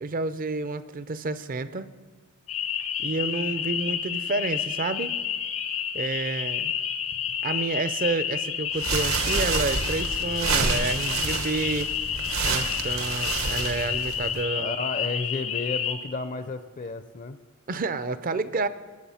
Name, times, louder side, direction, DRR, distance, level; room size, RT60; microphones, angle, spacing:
voice 1, 0.0-1.9 3.0-5.2 5.9-6.7 7.4-11.9 12.4-14.8 17.7-18.7, right 3 dB, 40° right, 14 dB, 0.5 m, -29 dB
sound 1, 2.5-15.9, left 8 dB, 85° left, 1.7 m, -30 dB
sound 2, 8.7-14.4, right 5 dB, 75° right, 1.2 m, -29 dB
voice 2, 14.5-17.4, left 3 dB, 40° left, 11 dB, 0.5 m, -32 dB
20.0 x 8.1 x 5.7 m, 1.4 s
head